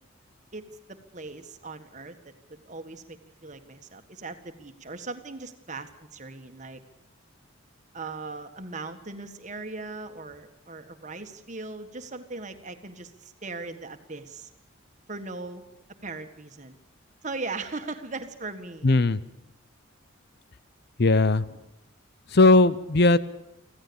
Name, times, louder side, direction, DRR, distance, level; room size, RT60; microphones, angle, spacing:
voice 1, 0.5-6.8 7.9-14.5 15.1-15.6 16.0-16.8 17.2-18.9, right 3 dB, 35° right, 7 dB, 1.7 m, -39 dB
voice 2, 18.8-19.2 21.0-21.4 22.3-23.2, left 2 dB, 50° left, 15 dB, 0.7 m, -18 dB
25.5 x 16.0 x 7.1 m, 0.89 s
head